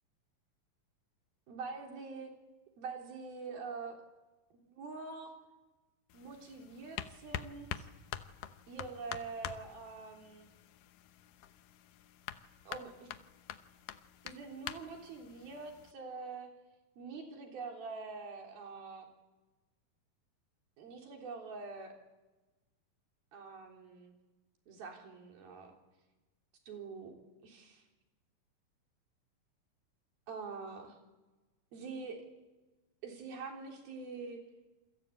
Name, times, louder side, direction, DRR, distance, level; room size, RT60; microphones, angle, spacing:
voice 1, 1.5-2.3 2.8-4.0 4.5-5.3 6.1-7.9 8.7-10.5 12.7-13.1 14.2-16.5 17.0-19.1 20.8-21.9 23.3-24.2 24.7-25.7 26.7-27.2 27.4-27.8 30.3-31.0 31.7-32.2 33.0-34.4, right 4 dB, 80° right, 2 dB, 5.4 m, -45 dB
sound 1, 6.1-15.9, left 11 dB, 70° left, 2.4 m, -46 dB
28.5 x 22.5 x 8.5 m, 1.2 s
omnidirectional pair, 4.2 m